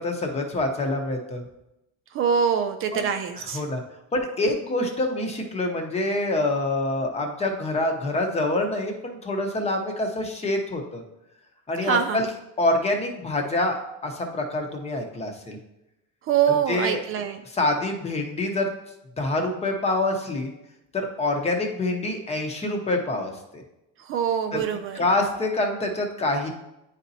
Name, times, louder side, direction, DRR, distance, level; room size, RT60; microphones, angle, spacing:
voice 1, 0.0-1.4 2.9-3.0 3.3-3.8 4.1-11.0 11.7-12.3 12.6-13.8 14.0-15.6 16.5-17.0 17.5-18.7 19.2-20.5 20.9-23.6 24.5-24.6 24.9-26.5, left 2 dB, 20° left, 3 dB, 0.8 m, -26 dB
voice 2, 2.1-3.6 11.8-12.2 16.3-17.4 24.1-25.0, right 8 dB, 45° right, 7 dB, 0.4 m, -24 dB
9.6 x 4.1 x 2.7 m, 0.89 s
cardioid pair, 145°, 31 cm